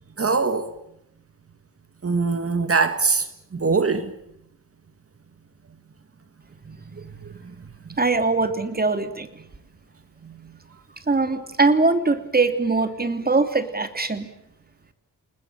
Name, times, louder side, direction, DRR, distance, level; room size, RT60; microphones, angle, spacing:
voice 1, 0.2-0.7 2.0-3.3 3.5-4.1 6.7-6.8 10.2-10.3, right 4 dB, 45° right, 2.1 m, -22 dB
voice 2, 8.0-9.3 11.1-14.3, right 3 dB, 25° right, 3.0 m, -21 dB
29.0 x 20.5 x 8.8 m
wide cardioid pair, 100°, 33 cm